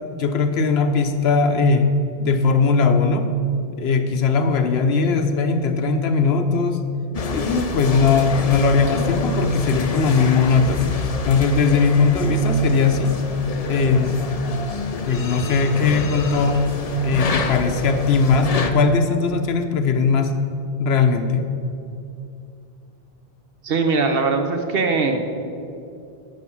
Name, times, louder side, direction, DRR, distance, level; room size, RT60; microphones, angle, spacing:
voice 1, 0.2-1.9 2.2-3.3 3.8-6.8 7.3-11.0 11.3-13.2 13.7-14.2 15.0-16.7 17.0-20.4 20.8-21.5, left 4 dB, 80° left, 7 dB, 1.0 m, -19 dB
sound 1, 7.1-18.7, left 3 dB, 45° left, 0.6 m, -28 dB
voice 2, 23.6-25.2, right 4 dB, 65° right, 5 dB, 1.1 m, -20 dB
10.5 x 5.0 x 7.0 m, 2.6 s
omnidirectional pair, 1.0 m